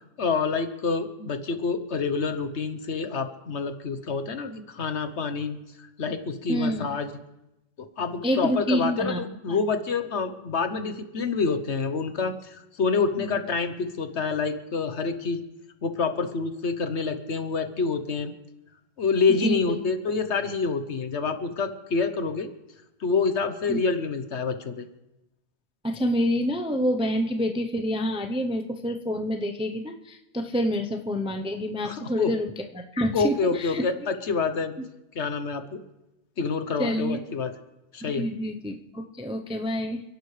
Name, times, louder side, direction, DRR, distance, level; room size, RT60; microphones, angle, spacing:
voice 1, 0.2-5.6 6.0-7.1 8.0-15.4 15.8-18.3 19.0-22.5 23.0-24.9 31.8-32.3 33.1-34.7 35.1-35.6 36.4-37.5 37.9-38.3, left 4 dB, 55° left, 8 dB, 1.2 m, -27 dB
voice 2, 6.5-6.9 8.2-9.2 9.5-9.6 13.2-13.4 19.4-19.8 23.7-23.8 25.8-33.9 36.8-37.2 38.0-40.0, equal, 5° right, 4 dB, 0.5 m, -27 dB
29.5 x 11.0 x 3.3 m, 0.94 s
omnidirectional pair, 1.4 m